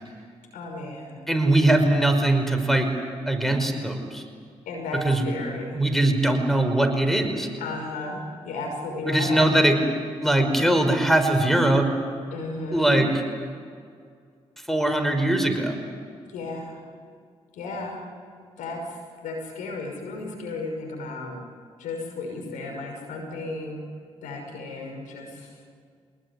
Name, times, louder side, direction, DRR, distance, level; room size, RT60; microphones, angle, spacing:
voice 1, 0.5-1.2 4.7-5.8 7.6-9.5 12.3-13.0 16.3-16.8 17.5-18.0 18.6-19.0 19.2-21.4 21.8-23.8 24.2-25.5, left 2 dB, 80° left, 2 dB, 5.9 m, -34 dB
voice 2, 1.3-2.9 3.3-4.2 4.9-5.3 5.7-7.5 9.0-9.8 10.2-11.9 12.7-13.1 14.7-15.8, right 1 dB, ahead, 7 dB, 5.4 m, -21 dB
25.5 x 20.5 x 9.8 m, 2.1 s
hypercardioid pair, 45°, 13 cm